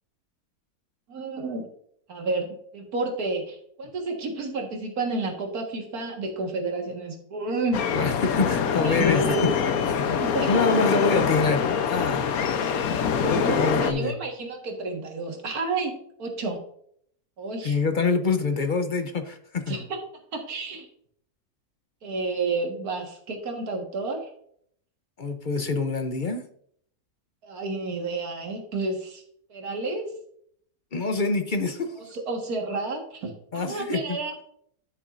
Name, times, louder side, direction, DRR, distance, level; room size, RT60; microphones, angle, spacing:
voice 1, 1.1-1.7 2.1-7.8 8.8-9.5 9.8-9.9 10.2-10.6 13.2-15.9 16.2-16.6 17.4-17.8 19.7-20.0 20.3-20.9 22.0-24.2 27.4-29.2 29.5-30.1 32.0-34.4, right 3 dB, 85° right, 3 dB, 2.1 m, -30 dB
sound 1, 7.7-13.9, left 7 dB, 75° left, 1.3 m, -24 dB
voice 2, 7.9-9.4 9.9-12.3 13.3-14.2 17.6-19.8 25.2-26.5 30.9-32.0 33.5-34.2, left 4 dB, 45° left, 8 dB, 0.7 m, -26 dB
12.0 x 7.1 x 2.5 m, 0.64 s
omnidirectional pair, 1.5 m